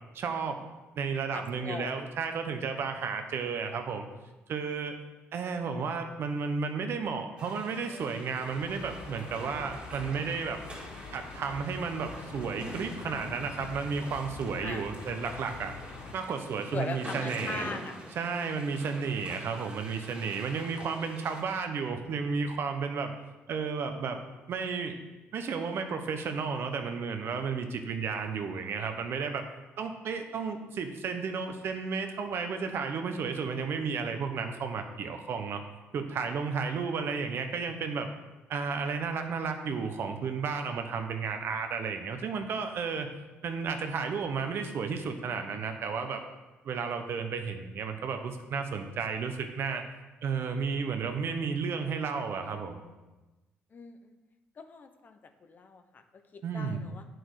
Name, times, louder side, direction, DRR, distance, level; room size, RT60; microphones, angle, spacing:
voice 1, 0.1-0.7 0.9-4.1 4.5-5.0 5.3-10.6 11.1-15.7 16.1-17.7 18.2-23.1 23.5-24.2 24.5-25.0 25.3-29.4 29.8-35.6 35.9-38.1 38.5-43.1 43.4-46.2 46.6-49.8 50.2-52.8 56.4-56.8, right 5 dB, 60° right, 6 dB, 1.0 m, -33 dB
voice 2, 1.3-1.9 14.6-15.1 15.4-15.6 16.7-18.0 53.7-54.2 54.6-57.1, left 4 dB, 40° left, 8 dB, 0.9 m, -41 dB
sound 1, 7.4-21.4, right 1 dB, 25° right, 2.2 m, -46 dB
sound 2, 8.4-16.1, left 4 dB, 70° left, 1.0 m, -45 dB
8.8 x 6.2 x 4.9 m, 1.1 s
cardioid pair, 95°, 5 cm